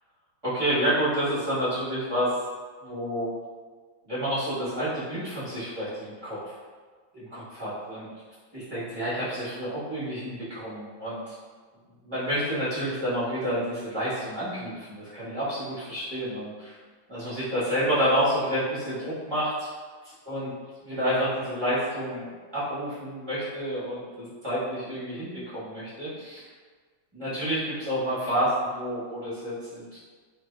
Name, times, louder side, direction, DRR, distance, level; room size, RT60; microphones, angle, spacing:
voice 1, 0.4-2.3 2.8-3.4 4.0-6.6 7.1-8.1 8.5-11.3 12.0-16.8 17.1-19.7 20.0-20.5 20.8-26.4 27.1-30.0, equal, 15° right, -12 dB, 1.2 m, -29 dB
3.3 x 3.2 x 2.4 m, 1.5 s
omnidirectional pair, 2.3 m